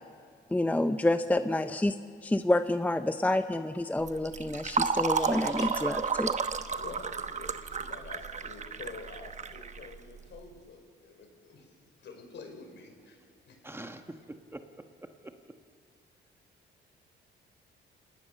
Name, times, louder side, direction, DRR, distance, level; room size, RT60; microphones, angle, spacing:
voice 1, 0.5-1.9 2.2-6.3, left 1 dB, 10° left, 10 dB, 0.6 m, -28 dB
sound 1, 2.0-2.3 2.6-2.7 4.9-5.7 7.5-7.8, left 3 dB, 35° left, 6.5 m, -47 dB
Fill (with liquid), 4.0-10.4, right 5 dB, 35° right, 1.0 m, -32 dB
voice 2, 6.8-13.2 13.4-13.6, left 4 dB, 65° left, 4 dB, 4.9 m, -48 dB
voice 3, 13.6-14.0 14.3-14.6 15.2-15.3, right 1 dB, 10° right, 6 dB, 1.2 m, -43 dB
28.5 x 18.0 x 6.5 m, 2.1 s
cardioid pair, 90°, 20 cm